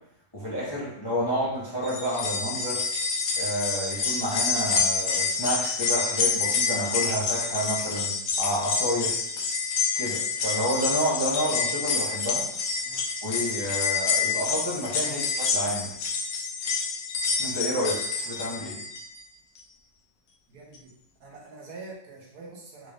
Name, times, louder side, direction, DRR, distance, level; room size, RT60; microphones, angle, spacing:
voice 1, 0.3-2.8 3.4-9.2 10.0-12.4 13.2-15.2 15.5-15.9 17.4-18.8, equal, 25° left, -7 dB, 0.5 m, -29 dB
sound 1, 1.8-19.2 19.6-19.7 20.8-20.9, left 5 dB, 70° left, 0.9 m, -28 dB
voice 2, 20.5-20.9 21.2-22.9, right 3 dB, 65° right, -2 dB, 1.3 m, -45 dB
3.9 x 2.5 x 3.2 m, 0.72 s
omnidirectional pair, 1.9 m